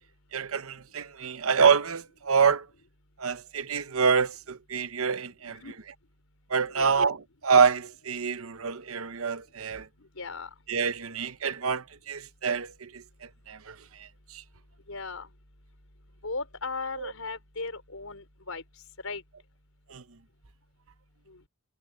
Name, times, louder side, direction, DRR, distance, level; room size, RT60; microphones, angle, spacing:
voice 1, 0.3-2.7 3.2-5.6 6.5-9.9 10.7-13.0 13.5-14.1 14.3-14.4 17.0-17.1 19.9-20.0, right 6 dB, 80° right, 0.9 m, -26 dB
voice 2, 10.1-10.5 14.9-15.3 16.2-18.6 19.0-19.2 21.3-21.4, left 3 dB, 75° left, 5.0 m, -37 dB
head